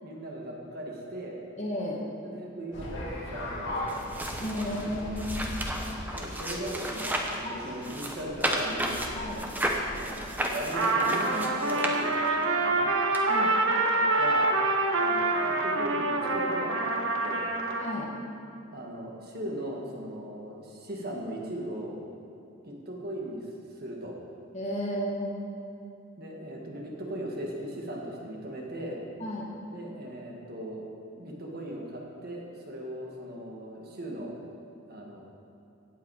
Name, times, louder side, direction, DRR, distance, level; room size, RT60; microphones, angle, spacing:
voice 1, 0.0-1.4 2.2-2.9 3.2-3.9 6.1-9.1 10.0-12.1 12.4-12.9 14.2-14.5 14.9-17.5 18.7-22.0 22.7-23.5 23.8-24.2 26.2-29.0 29.7-30.8 31.2-34.3 34.9-35.2, right 1 dB, 45° right, -2 dB, 1.8 m, -38 dB
voice 2, 1.6-2.1 4.4-5.5 7.4-7.7 9.1-9.4 13.3-13.5 17.8-18.1 24.5-25.3 29.2-29.5, equal, 30° left, -3 dB, 2.0 m, -33 dB
sound 1, 2.7-10.2, left 1 dB, 55° left, 2.8 m, -39 dB
sound 2, 3.9-7.4 7.8-12.4 13.1-13.2, right 1 dB, 10° right, 0.9 m, -33 dB
Trumpet, 10.7-17.9, right 2 dB, 65° right, 1.2 m, -26 dB
16.5 x 8.3 x 4.9 m, 2.6 s
head